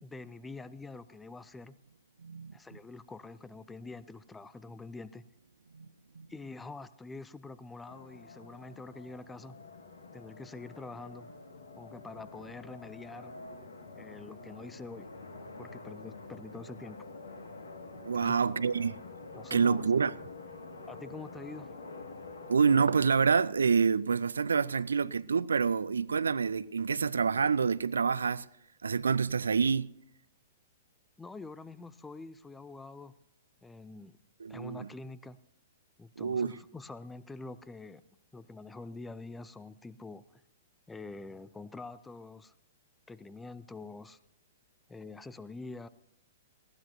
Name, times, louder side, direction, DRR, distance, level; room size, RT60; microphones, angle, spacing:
voice 1, 0.0-1.7 2.5-5.3 6.3-9.6 10.1-11.3 11.8-13.3 13.9-15.1 15.6-17.1 18.1-18.4 19.3-19.8 20.9-21.7 31.2-33.1 33.6-34.2 34.5-35.4 36.0-38.0 38.3-40.4 40.9-42.5 43.1-44.2 44.9-45.9, left 3 dB, 10° left, 0.6 m, -46 dB
voice 2, 2.2-2.5 5.7-5.9 6.2-6.3 18.0-18.9 19.5-20.1 22.5-28.5 28.8-29.9 34.4-34.9 36.2-36.6, right 5 dB, 65° right, 0.4 m, -27 dB
sound 1, 7.9-23.1, left 3 dB, 65° left, 1.8 m, -47 dB
19.5 x 16.0 x 2.7 m
figure-of-eight pair, 110°, 0 cm